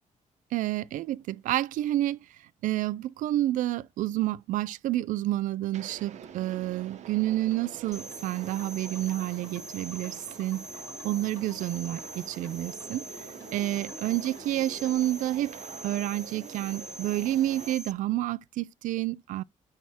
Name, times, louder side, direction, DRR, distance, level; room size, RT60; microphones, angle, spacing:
voice 1, 0.5-10.7 11.0-13.1 13.5-15.6 15.8-19.4, right 14 dB, 75° right, 0.4 m, -29 dB
sound 1, 5.7-17.8, right 8 dB, 60° right, 1.0 m, -47 dB
sound 2, 7.3-15.0, left 4 dB, 15° left, 5.5 m, -52 dB
sound 3, 7.9-17.9, right 1 dB, 5° right, 0.4 m, -44 dB
10.5 x 3.5 x 4.2 m
cardioid pair, 170°, 13 cm